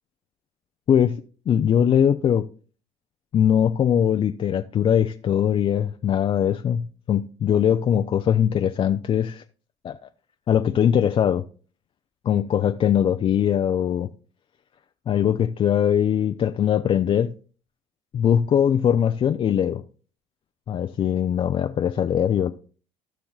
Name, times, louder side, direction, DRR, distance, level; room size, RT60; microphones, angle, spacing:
voice 1, 0.9-2.5 3.3-9.4 9.8-9.9 10.5-11.4 12.2-14.1 15.1-17.3 18.1-19.8 20.7-22.5, left 9 dB, 40° left, 0.5 m, -21 dB
15.0 x 5.9 x 2.4 m
supercardioid pair, 75°, 14 cm